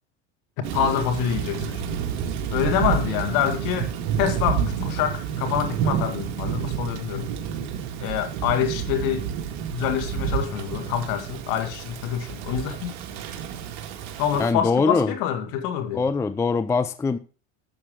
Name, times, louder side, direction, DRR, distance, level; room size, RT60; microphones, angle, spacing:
voice 1, 0.6-2.0 2.5-3.9 4.2-7.3 8.0-9.3 9.7-12.9 14.2-16.1, left 9 dB, 60° left, 1.9 m, -26 dB
Thunder / Rain, 0.6-14.5, right 8 dB, 60° right, 1.9 m, -29 dB
voice 2, 14.4-15.1 15.9-17.2, left 4 dB, 10° left, 0.4 m, -22 dB
11.0 x 7.2 x 3.6 m
supercardioid pair, 110°, 36 cm